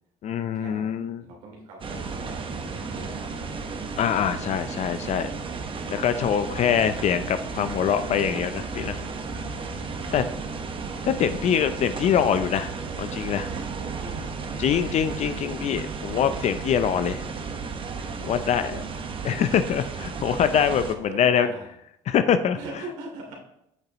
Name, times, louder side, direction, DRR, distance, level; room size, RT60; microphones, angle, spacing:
voice 1, 0.2-1.2 4.0-5.3 5.9-9.0 10.1-10.2 11.0-12.7 13.0-13.5 14.6-17.2 18.2-18.8 19.2-21.5 22.1-22.6, left 8 dB, 50° left, 11 dB, 0.5 m, -24 dB
voice 2, 1.2-3.7 6.6-6.9 10.0-10.3 14.0-14.8 18.1-19.0 20.9-21.7 22.6-23.3, right 2 dB, 80° right, -1 dB, 2.8 m, -42 dB
sound 1, 1.8-20.9, right 4 dB, 35° right, 1.1 m, -34 dB
8.6 x 6.6 x 3.0 m, 0.78 s
supercardioid pair, 80°, 15 cm